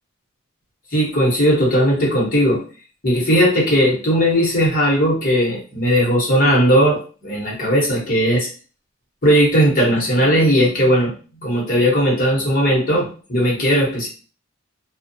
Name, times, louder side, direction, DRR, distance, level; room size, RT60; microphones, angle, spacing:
voice 1, 0.9-2.6 3.0-8.5 9.2-11.1 11.4-14.1, equal, 40° left, -4 dB, 1.1 m, -17 dB
2.6 x 2.3 x 2.6 m, 0.38 s
head